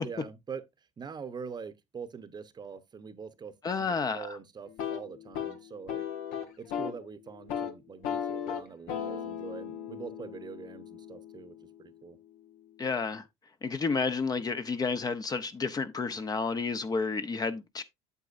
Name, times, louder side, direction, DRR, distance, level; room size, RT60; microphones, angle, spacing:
voice 1, 0.0-0.6 1.0-3.5 3.8-6.1 6.6-11.5 11.8-12.2, right 6 dB, 30° right, 0.9 m, -43 dB
voice 2, 3.6-4.4 12.8-13.2 13.6-17.8, left 4 dB, 30° left, 0.7 m, -31 dB
sound 1, 4.7-7.0 7.3-7.7 8.0-11.9, left 8 dB, 80° left, 1.5 m, -37 dB
8.3 x 7.6 x 2.5 m
cardioid pair, 105°, 14 cm